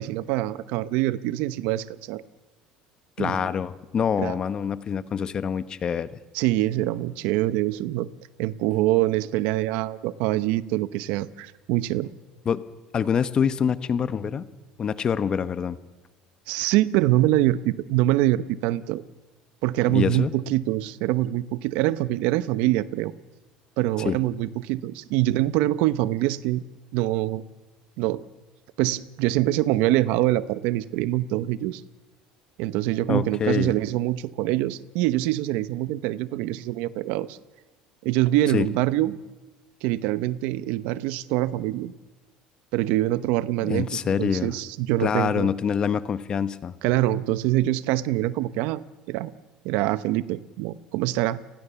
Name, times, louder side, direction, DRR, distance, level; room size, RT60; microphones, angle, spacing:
voice 1, 0.0-2.2 3.2-3.5 4.2-4.3 6.3-8.1 8.4-12.1 16.5-19.0 19.6-23.1 23.8-26.6 26.9-27.4 28.0-28.2 28.8-31.8 32.6-37.4 38.0-39.2 39.8-41.9 42.7-45.5 46.8-48.8 49.1-49.3 49.6-51.4, right 15 dB, 75° right, 16 dB, 0.9 m, -24 dB
voice 2, 3.2-6.2 12.4-12.6 12.9-14.5 14.8-15.8 19.9-20.3 24.0-24.2 33.1-33.7 38.5-38.7 43.6-44.5 45.0-46.7, left 7 dB, 35° left, 14 dB, 1.1 m, -25 dB
29.5 x 20.0 x 7.0 m, 1.2 s
cardioid pair, 120°, 3 cm